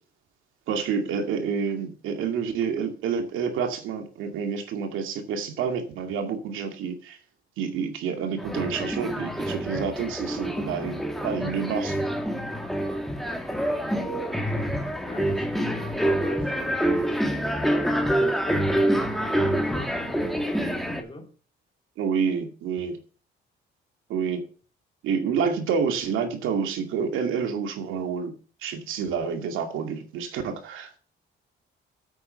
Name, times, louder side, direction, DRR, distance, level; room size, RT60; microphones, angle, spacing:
voice 1, 0.7-7.2 7.6-12.0 22.0-23.0 24.1-24.4 25.0-28.3 28.6-31.0, right 6 dB, 90° right, 2.3 m, -28 dB
sound 1, 8.4-21.0, right 1 dB, ahead, 2.1 m, -26 dB
voice 2, 13.3-14.6 15.0-17.5 18.0-18.7 19.2-21.3, left 2 dB, 25° left, 2.7 m, -39 dB
8.7 x 8.6 x 5.6 m
cardioid pair, 90°, 20 cm